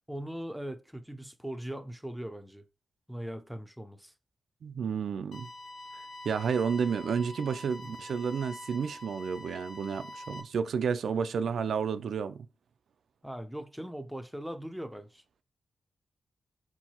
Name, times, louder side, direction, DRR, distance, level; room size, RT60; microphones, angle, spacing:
voice 1, 0.1-2.6 3.1-4.1 13.2-15.2, equal, ahead, 0.5 m, -40 dB
voice 2, 4.6-5.5 6.2-12.4, right 6 dB, 75° right, 0.4 m, -31 dB
sound 1, 5.3-10.4, left 1 dB, 80° left, 0.8 m, -45 dB
4.5 x 3.9 x 2.9 m
wide cardioid pair, 150°, 0 cm